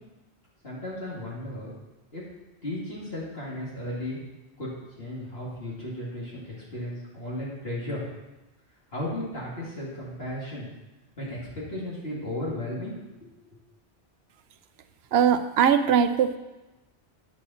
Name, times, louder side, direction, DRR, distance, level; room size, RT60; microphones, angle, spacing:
voice 1, 0.6-1.7 2.1-2.2 2.6-4.2 4.6-4.7 5.0-8.0 8.9-10.7 11.2-12.9 13.2-13.3, left 1 dB, 65° left, -7 dB, 2.6 m, -35 dB
voice 2, 15.1-16.4, right 8 dB, 70° right, 10 dB, 0.8 m, -21 dB
9.7 x 8.4 x 4.2 m, 1.0 s
omnidirectional pair, 1.1 m